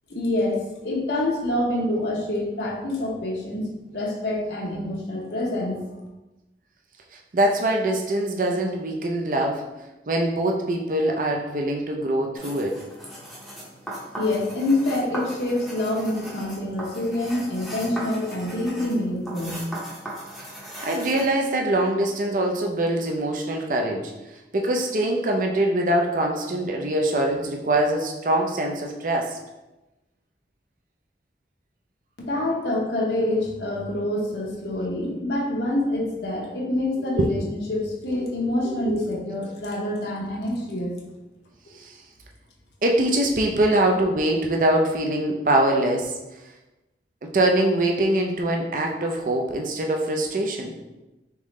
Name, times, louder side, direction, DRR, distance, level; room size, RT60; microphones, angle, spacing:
voice 1, 0.1-3.6 3.9-5.8 14.2-19.7 32.2-40.9, left 1 dB, 75° left, -3 dB, 0.9 m, -26 dB
voice 2, 7.3-9.6 10.1-12.8 20.8-24.1 24.5-29.4 37.1-37.3 38.6-38.9 41.8-42.0 42.8-46.2 47.2-50.7, right 1 dB, 50° right, 1 dB, 0.5 m, -23 dB
sound 1, 12.3-21.3, right 1 dB, ahead, 0.7 m, -38 dB
3.6 x 3.6 x 3.1 m, 1.0 s
head